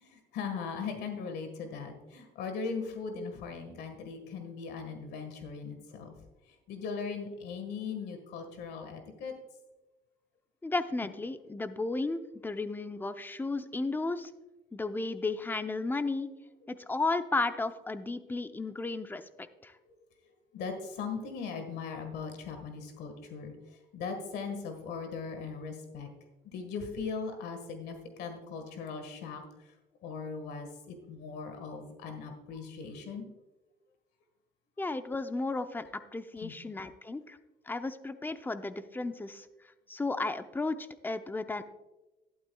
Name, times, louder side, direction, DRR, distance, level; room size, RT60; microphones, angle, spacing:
voice 1, 0.0-6.1 6.7-9.3 20.5-23.5 23.9-26.1 26.5-29.4 30.0-33.3 36.4-36.5, left 5 dB, 80° left, 6 dB, 1.6 m, -39 dB
voice 2, 10.6-14.3 14.7-16.3 16.7-19.7 34.8-37.4 37.7-39.5 39.9-41.6, left 3 dB, 10° left, 10 dB, 0.6 m, -34 dB
12.0 x 11.5 x 2.3 m, 1.1 s
cardioid pair, 110°, 17 cm